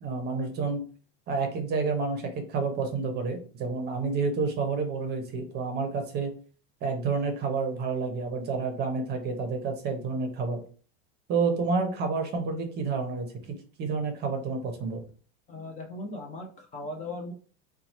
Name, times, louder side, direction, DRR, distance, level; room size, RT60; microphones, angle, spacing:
voice 1, 0.0-0.8 1.3-6.3 6.8-10.6 11.3-15.0, right 4 dB, 30° right, 5 dB, 0.7 m, -29 dB
voice 2, 15.5-17.3, left 2 dB, 25° left, 2 dB, 0.5 m, -38 dB
2.9 x 2.2 x 4.0 m, 0.41 s
supercardioid pair, 135°, 31 cm